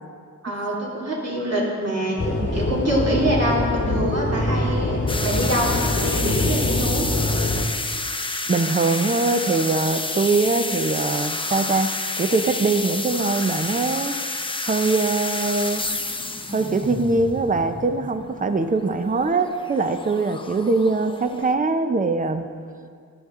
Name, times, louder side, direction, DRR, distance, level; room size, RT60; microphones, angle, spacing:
voice 1, 0.4-2.2 2.5-7.1, equal, 50° right, -5 dB, 2.6 m, -25 dB
sound 1, 2.2-7.6, left 2 dB, 35° left, 1.2 m, -24 dB
sound 2, 5.1-21.5, left 2 dB, 15° left, 0.6 m, -30 dB
voice 2, 8.5-11.9 12.2-14.2 14.6-15.9 16.5-22.6, right 3 dB, 25° right, 9 dB, 0.7 m, -22 dB
15.0 x 10.5 x 3.7 m, 2.2 s
wide cardioid pair, 90°, 33 cm